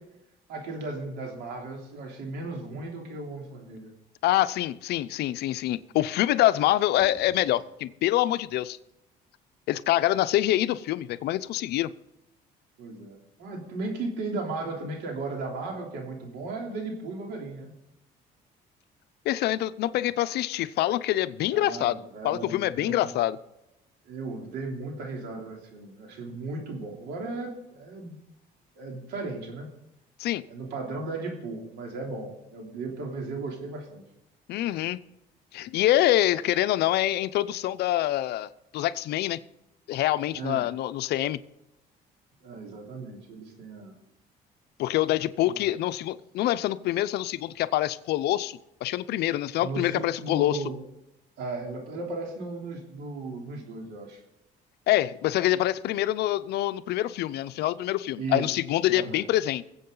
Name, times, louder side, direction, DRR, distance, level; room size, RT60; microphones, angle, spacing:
voice 1, 0.5-3.9 12.8-17.7 21.5-23.1 24.0-28.2 28.8-29.7 30.5-34.0 40.4-40.7 42.4-44.0 45.4-45.6 49.6-50.8 51.4-54.2 58.2-58.5 58.9-59.2, right 3 dB, 85° right, 1 dB, 3.2 m, -36 dB
voice 2, 4.2-8.8 9.7-11.9 19.2-22.0 22.2-23.4 30.2-30.4 34.5-35.0 35.5-39.4 39.9-41.4 44.8-50.6 54.9-59.6, left 14 dB, 75° left, 14 dB, 0.6 m, -25 dB
sound 1, 6.4-6.5 6.8-7.8 8.9-9.0 9.5-9.6 9.8-10.3, right 4 dB, 50° right, 2.3 m, -52 dB
21.0 x 8.0 x 3.9 m, 0.89 s
cardioid pair, 110°, 17 cm